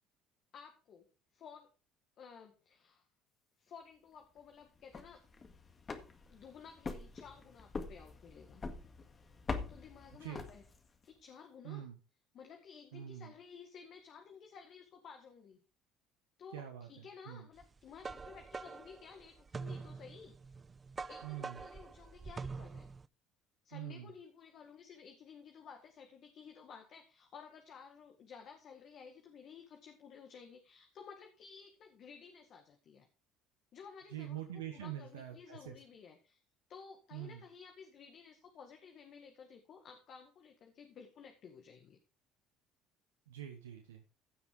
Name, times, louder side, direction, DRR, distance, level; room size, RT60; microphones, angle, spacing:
voice 1, 0.5-1.7 2.2-3.1 3.6-5.2 6.3-8.6 9.7-10.6 11.0-11.8 12.3-15.6 16.4-20.3 21.1-22.9 23.6-33.1 33.7-34.4 34.7-36.4 36.7-42.0, left 6 dB, 55° left, 4 dB, 1.8 m, -54 dB
sound 1, 4.7-11.0, left 4 dB, 30° left, 1.8 m, -44 dB
voice 2, 11.6-12.0 12.9-13.3 16.5-17.5 21.2-21.6 23.7-24.1 34.1-35.7 37.1-37.4 43.3-44.0, right 11 dB, 90° right, 5 dB, 1.1 m, -45 dB
sound 2, 17.6-23.1, right 4 dB, 30° right, 0.5 m, -45 dB
15.5 x 6.1 x 3.8 m, 0.34 s
hypercardioid pair, 70°, 0 cm